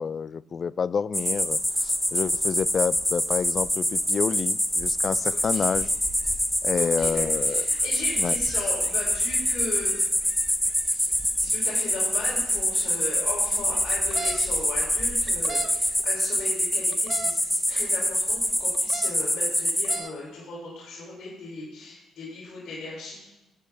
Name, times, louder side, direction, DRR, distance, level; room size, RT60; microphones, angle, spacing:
voice 1, 0.0-5.9 6.6-7.6 8.2-8.3, left 6 dB, 45° left, 20 dB, 0.3 m, -28 dB
sound 1, 1.1-20.0, equal, 5° left, 1.1 m, -25 dB
voice 2, 5.3-5.8 6.7-10.0 10.7-23.3, left 3 dB, 70° left, -6 dB, 3.3 m, -38 dB
sound 2, 13.9-14.4 15.3-15.7 16.9-17.3 18.7-19.1 19.7-20.1, right 4 dB, 40° right, 0.8 m, -36 dB
16.0 x 8.5 x 3.4 m, 0.93 s
cardioid pair, 90°, 0 cm